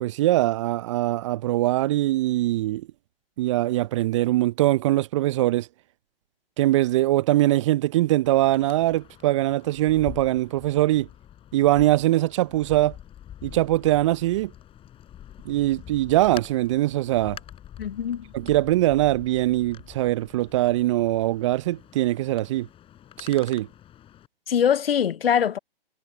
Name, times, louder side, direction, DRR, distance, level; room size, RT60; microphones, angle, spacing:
voice 1, 0.0-2.9 3.4-5.7 6.6-11.1 11.5-12.9 13.4-14.5 15.5-17.4 18.3-22.7 23.2-23.7, right 16 dB, 30° right, 0.6 m, -22 dB
Wind, 8.2-24.3, left 11 dB, 20° left, 6.0 m, -46 dB
voice 2, 17.8-18.2 24.5-25.6, left 8 dB, 75° left, 0.6 m, -22 dB
figure-of-eight pair, 130°, 30 cm